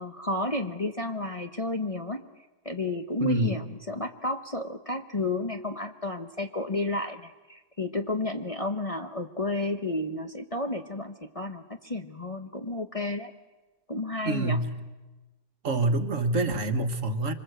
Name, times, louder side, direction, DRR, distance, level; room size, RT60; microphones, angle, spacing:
voice 1, 0.0-2.2 2.6-13.3 13.9-14.6, left 2 dB, 25° left, 5 dB, 1.1 m, -31 dB
voice 2, 3.2-3.6 14.2-14.8 15.6-17.3, right 2 dB, 55° right, 8 dB, 1.7 m, -26 dB
25.5 x 25.0 x 8.0 m, 1.2 s
omnidirectional pair, 1.6 m